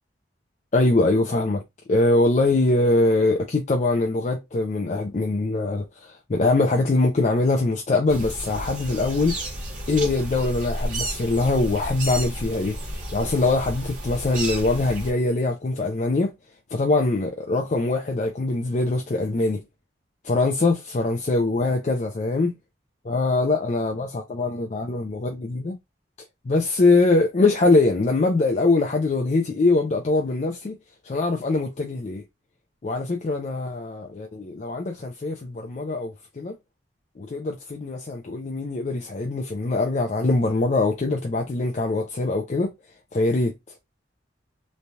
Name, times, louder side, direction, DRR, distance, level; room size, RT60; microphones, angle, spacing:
voice 1, 0.7-1.6 1.9-9.4 9.9-12.8 13.1-16.3 16.7-19.6 20.2-22.5 23.0-25.8 26.5-30.8 31.0-32.2 32.8-36.6 37.2-42.7 43.1-43.5, left 2 dB, 40° left, 0.4 m, -23 dB
sound 1, 8.1-15.1, right 1 dB, 45° right, 1.1 m, -32 dB
3.1 x 2.2 x 2.6 m
head